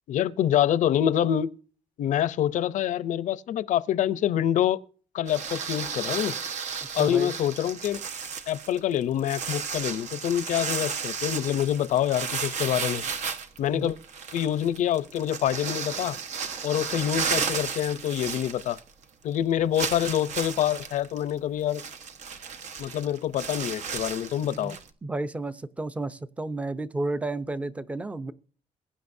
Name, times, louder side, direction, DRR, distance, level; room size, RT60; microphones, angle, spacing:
voice 1, 0.1-1.5 2.0-4.8 5.1-6.3 6.9-8.0 8.5-13.0 13.6-14.0 14.3-16.2 16.6-18.8 19.2-21.8 22.8-24.8, left 10 dB, 75° left, 0.6 m, -26 dB
sound 1, 5.3-19.0 19.3-19.4 19.7-24.9, right 6 dB, 65° right, 1.2 m, -34 dB
voice 2, 7.0-7.3 13.7-13.9 24.4-28.3, right 2 dB, 10° right, 0.6 m, -32 dB
22.0 x 10.0 x 2.7 m
cardioid pair, 160°, 13 cm